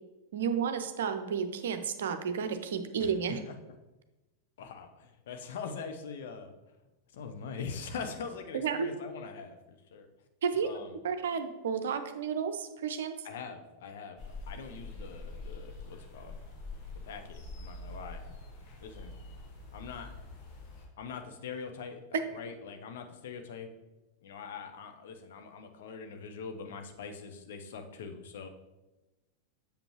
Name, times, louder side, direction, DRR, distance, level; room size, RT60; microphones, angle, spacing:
voice 1, 0.3-3.4 8.5-9.0 10.4-10.7 11.0-13.2, right 6 dB, 60° right, 8 dB, 0.6 m, -32 dB
voice 2, 4.6-6.5 7.1-10.1 10.6-10.9 13.2-14.2 14.5-16.3 17.0-18.4 18.8-19.1 19.7-20.1 21.0-23.7 24.2-28.5, left 5 dB, 55° left, 5 dB, 0.8 m, -43 dB
sound 1, 14.2-20.9, left 2 dB, 40° left, 1.5 m, -45 dB
7.7 x 6.8 x 3.0 m, 1.1 s
figure-of-eight pair, 90°, 0 cm